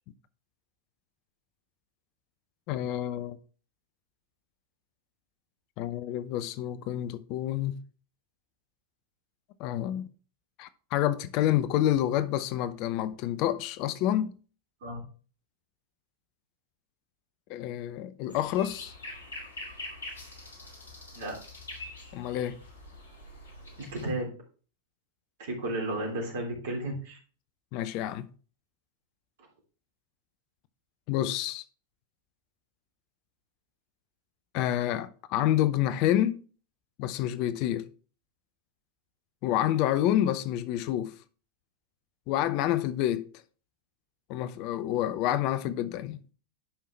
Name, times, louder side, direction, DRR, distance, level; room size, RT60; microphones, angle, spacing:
voice 1, 2.7-3.4 5.8-7.8 9.6-10.1 10.6-14.3 17.5-18.9 22.1-22.6 27.7-28.3 31.1-31.6 34.5-36.4 37.0-37.9 39.4-41.1 42.3-43.3 44.3-46.3, left 12 dB, 40° left, 0.6 m, -28 dB
sound 1, 18.3-24.1, left 2 dB, 70° left, 2.3 m, -44 dB
voice 2, 23.8-24.3 25.4-27.2, right 1 dB, 55° right, 3.2 m, -33 dB
11.5 x 5.5 x 3.2 m
figure-of-eight pair, 90°, 0 cm